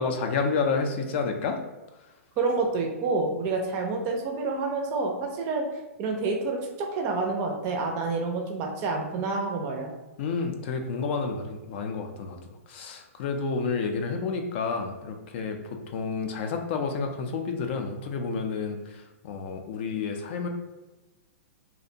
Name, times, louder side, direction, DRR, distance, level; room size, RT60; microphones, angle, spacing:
voice 1, 0.0-1.6 10.2-12.4 12.7-20.5, left 4 dB, 50° left, 4 dB, 0.4 m, -30 dB
voice 2, 2.4-5.6 6.0-9.9, right 3 dB, 35° right, 2 dB, 0.4 m, -28 dB
2.5 x 2.1 x 2.7 m, 1.1 s
hypercardioid pair, 135°, 8 cm